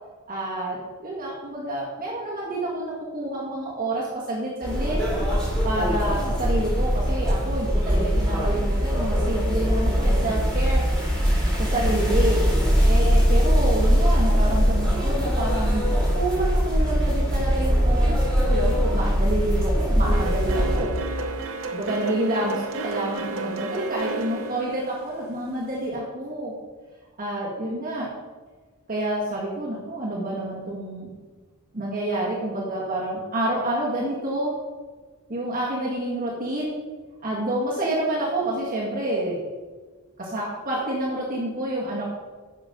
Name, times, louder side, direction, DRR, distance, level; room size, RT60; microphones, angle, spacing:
voice 1, 0.3-5.0 5.6-10.8 11.6-12.5 12.8-21.0 21.7-26.5 27.2-28.1 28.9-31.1 31.7-34.6 35.3-36.8 37.2-39.4 40.2-42.0, right 1 dB, 40° right, -5 dB, 2.0 m, -28 dB
sound 1, 4.6-20.8, equal, 5° left, 3.4 m, -21 dB
sound 2, 20.1-25.9, right 3 dB, 65° right, 0.8 m, -32 dB
10.0 x 6.3 x 5.3 m, 1.4 s
head